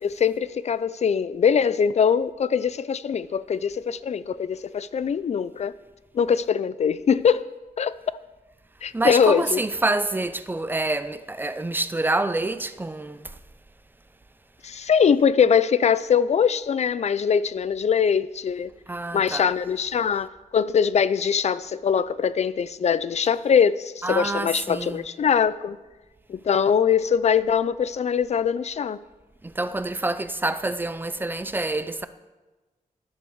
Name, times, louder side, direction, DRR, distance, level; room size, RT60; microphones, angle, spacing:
voice 1, 0.0-5.7 6.1-7.5 7.8-7.9 8.8-9.6 14.6-18.7 19.1-25.8 26.3-29.0, left 7 dB, 50° left, 0.5 m, -22 dB
voice 2, 8.9-13.4 18.9-19.5 24.0-25.1 29.4-32.1, right 2 dB, 15° right, 0.5 m, -27 dB
13.5 x 11.0 x 4.7 m
wide cardioid pair, 150°, 14 cm